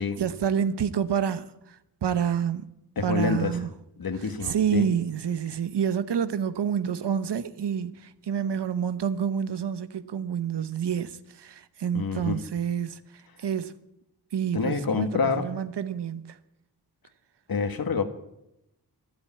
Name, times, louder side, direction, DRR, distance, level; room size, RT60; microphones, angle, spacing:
voice 1, 0.0-1.5 2.0-2.6 3.0-3.7 4.4-13.0 13.4-13.7 14.3-15.1 15.4-16.3, right 8 dB, 85° right, 1.0 m, -28 dB
voice 2, 2.9-3.6 4.0-4.9 11.9-12.4 14.5-15.5 17.5-18.0, left 5 dB, 60° left, 1.7 m, -27 dB
13.0 x 12.0 x 8.5 m
wide cardioid pair, 110°, 40 cm